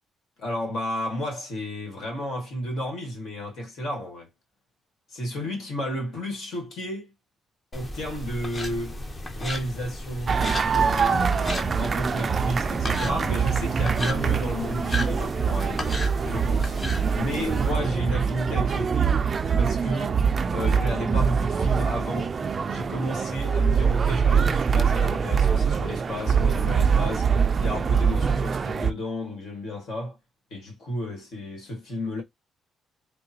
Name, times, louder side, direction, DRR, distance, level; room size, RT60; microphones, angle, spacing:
voice 1, 0.4-4.3 5.1-7.1 7.7-9.0 9.3-20.2 20.5-22.3 22.7-27.3 27.6-30.2 30.5-32.2, equal, 70° left, 1.6 m, -32 dB
sound 1, 7.7-17.7, left 1 dB, 25° left, 0.8 m, -35 dB
sound 2, 10.3-28.9, right 6 dB, 40° right, 0.3 m, -24 dB
3.6 x 2.2 x 2.8 m
cardioid pair, 90°, 0 cm